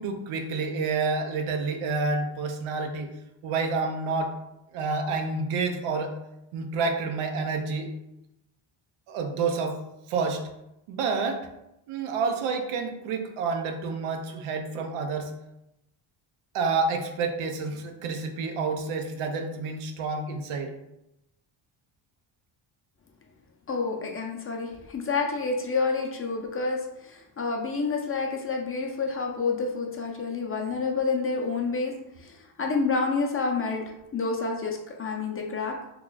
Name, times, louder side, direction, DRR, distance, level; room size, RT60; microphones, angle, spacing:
voice 1, 0.0-3.1 3.4-4.3 4.7-6.2 6.5-7.9 9.1-9.8 10.1-10.4 10.9-11.5 11.9-15.3 16.5-20.7, right 4 dB, 85° right, 4 dB, 0.7 m, -29 dB
voice 2, 23.7-35.8, left 4 dB, 30° left, 1 dB, 0.5 m, -29 dB
3.0 x 2.4 x 3.8 m, 0.88 s
cardioid pair, 120°, 49 cm